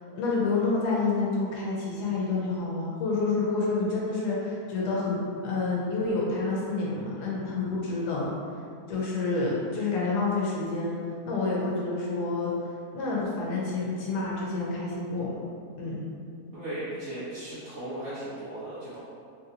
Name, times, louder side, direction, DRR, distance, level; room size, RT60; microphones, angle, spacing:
voice 1, 0.2-8.3 8.9-10.9 11.2-12.5 12.9-15.4 15.8-16.0, left 3 dB, 85° left, -5 dB, 1.2 m, -28 dB
voice 2, 16.5-19.0, right 1 dB, 55° right, -13 dB, 0.9 m, -36 dB
3.3 x 2.8 x 2.5 m, 2.3 s
omnidirectional pair, 1.7 m